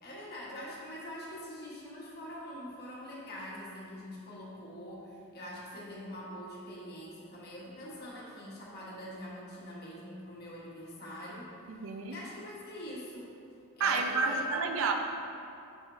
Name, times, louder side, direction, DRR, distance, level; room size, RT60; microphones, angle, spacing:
voice 1, 0.0-11.8 12.1-13.4 13.7-14.8, equal, 45° left, -6 dB, 1.3 m, -44 dB
voice 2, 11.8-12.2 13.8-14.9, right 4 dB, 65° right, 4 dB, 0.4 m, -29 dB
6.6 x 5.9 x 2.7 m, 2.6 s
head